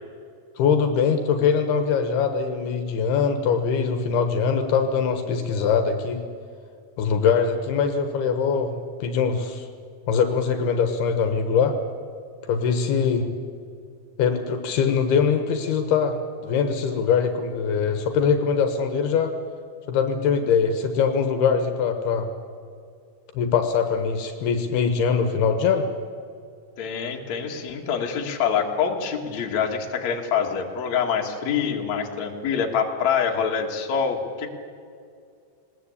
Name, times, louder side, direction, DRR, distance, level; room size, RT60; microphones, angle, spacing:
voice 1, 0.6-6.2 7.0-9.6 10.1-11.7 12.5-13.3 14.2-16.2 16.4-19.3 19.9-22.3 23.4-25.9, left 6 dB, 75° left, 7 dB, 3.1 m, -22 dB
voice 2, 26.8-34.5, left 7 dB, 50° left, 1 dB, 2.8 m, -25 dB
20.0 x 19.5 x 8.5 m, 2.4 s
omnidirectional pair, 4.7 m